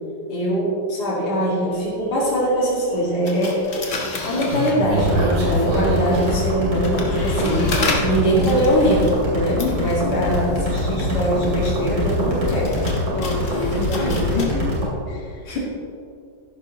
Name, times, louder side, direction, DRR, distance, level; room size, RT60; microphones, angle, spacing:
voice 1, 0.3-3.8 4.2-7.7 8.0-12.8 14.0-14.2 15.5-15.6, equal, 70° left, -6 dB, 2.8 m, -22 dB
sound 1, 1.7-1.9 2.3-3.0 3.8-7.0 7.5-7.6, right 2 dB, 60° right, 3.2 m, -26 dB
sound 2, 3.3-5.3 6.0-14.5, left 3 dB, 50° left, 1.7 m, -32 dB
sound 3, 5.0-14.9, left 1 dB, 85° right, 3.3 m, -24 dB
voice 2, 9.6-10.1 13.1-14.6 15.1-15.6, left 5 dB, 85° left, 1 dB, 2.1 m, -28 dB
14.0 x 11.0 x 3.1 m, 2.5 s
omnidirectional pair, 1.8 m